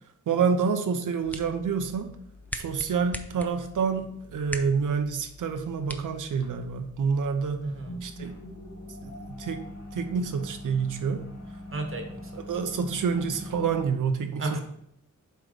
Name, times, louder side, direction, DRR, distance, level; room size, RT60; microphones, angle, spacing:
voice 1, 0.3-2.1 2.5-7.6 8.0-8.3 9.0-9.6 9.9-11.3 12.4-14.6, right 6 dB, 80° right, 7 dB, 0.8 m, -28 dB
sound 1, 1.0-6.9, left 1 dB, 5° left, 0.4 m, -43 dB
sound 2, 1.2-13.9, left 1 dB, 75° left, 1.7 m, -45 dB
voice 2, 7.6-8.0 11.7-12.3 14.4-14.6, right 2 dB, 45° right, 3 dB, 1.1 m, -33 dB
7.6 x 3.2 x 5.1 m, 0.72 s
wide cardioid pair, 125°, 31 cm